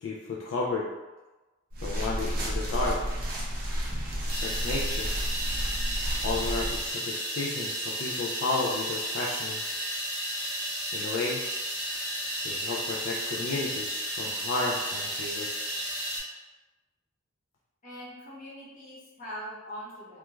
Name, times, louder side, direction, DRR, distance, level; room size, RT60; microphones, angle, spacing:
voice 1, 0.0-0.9 1.8-3.0 4.1-5.1 6.2-9.6 10.9-11.4 12.4-15.7, left 3 dB, 65° left, -3 dB, 0.3 m, -32 dB
sound 1, 1.7-6.9, equal, 45° right, 0.5 m, -31 dB
sound 2, 4.3-16.2, equal, 15° right, 0.9 m, -33 dB
voice 2, 17.8-20.2, equal, 40° left, -7 dB, 0.8 m, -42 dB
2.3 x 2.2 x 3.0 m, 1.1 s
head